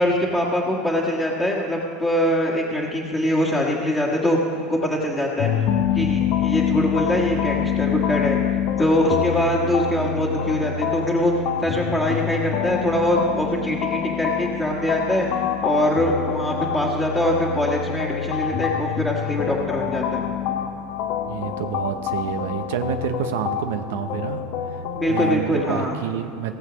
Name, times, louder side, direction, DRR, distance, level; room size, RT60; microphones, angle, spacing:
voice 1, 0.0-5.5 5.9-8.4 8.8-11.3 11.6-15.3 15.6-20.2 25.0-26.0, left 1 dB, 5° left, -4 dB, 1.4 m, -23 dB
sound 1, 5.4-25.4, left 9 dB, 60° left, 0.7 m, -26 dB
voice 2, 21.3-24.8 25.1-26.6, right 9 dB, 80° right, 8 dB, 0.7 m, -28 dB
17.5 x 6.8 x 6.1 m, 2.6 s
supercardioid pair, 120°, 0 cm